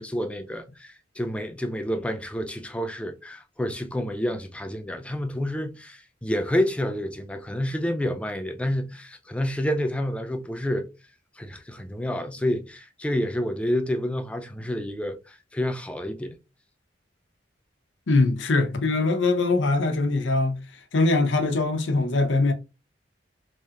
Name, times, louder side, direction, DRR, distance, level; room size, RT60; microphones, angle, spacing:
voice 1, 0.0-10.9 11.4-16.4, left 1 dB, 5° left, 0.3 m, -29 dB
voice 2, 18.1-22.5, left 3 dB, 90° left, 0.6 m, -22 dB
3.1 x 2.8 x 2.3 m
head